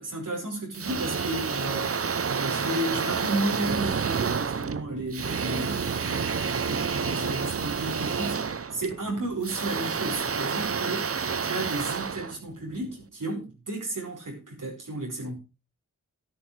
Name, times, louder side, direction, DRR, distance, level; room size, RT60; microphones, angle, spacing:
voice 1, 0.0-2.0 2.3-15.4, right 1 dB, 70° right, 5.0 m, -33 dB
sound 1, 0.7-13.0, right 6 dB, 45° right, 0.7 m, -29 dB
13.0 x 11.0 x 3.4 m
wide cardioid pair, 75°, 32 cm